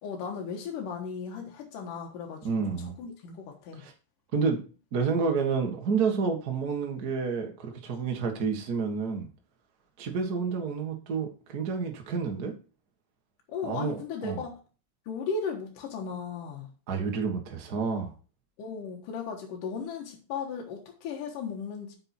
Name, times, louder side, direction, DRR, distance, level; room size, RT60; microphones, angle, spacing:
voice 1, 0.0-3.8 13.5-14.6 15.1-16.7 18.6-22.0, left 5 dB, 70° left, 2.9 m, -36 dB
voice 2, 2.4-2.9 3.8-3.9 4.3-4.6 4.9-9.3 10.0-12.5 13.6-14.4 16.9-18.1, right 5 dB, 45° right, 1.2 m, -29 dB
8.8 x 5.7 x 4.4 m
omnidirectional pair, 4.0 m